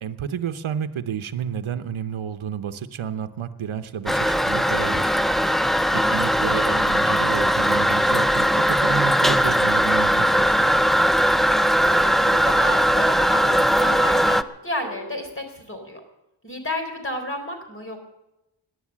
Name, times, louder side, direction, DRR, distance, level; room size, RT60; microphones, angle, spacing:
voice 1, 0.0-5.4 5.9-10.7, right 8 dB, 80° right, 10 dB, 0.9 m, -31 dB
Toilet flush, 4.1-14.4, equal, ahead, 0.4 m, -19 dB
voice 2, 5.9-6.3 11.6-16.0 16.4-18.0, left 1 dB, 25° left, 4 dB, 3.9 m, -32 dB
sound 1, 8.3-15.3, right 2 dB, 20° right, 1.7 m, -44 dB
17.5 x 10.5 x 7.3 m, 0.92 s
wide cardioid pair, 85°, 47 cm